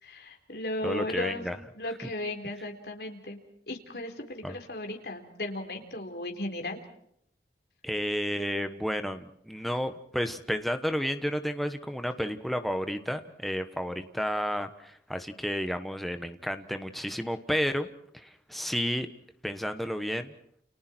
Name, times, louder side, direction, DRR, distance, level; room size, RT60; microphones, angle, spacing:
voice 1, 0.0-1.5 1.7-3.4 3.7-6.8, left 1 dB, 60° left, 3 dB, 4.1 m, -36 dB
voice 2, 0.8-1.6 4.4-4.6 7.8-17.9 18.1-19.1 19.4-20.3, equal, ahead, 7 dB, 1.4 m, -31 dB
30.0 x 30.0 x 4.6 m, 0.68 s
head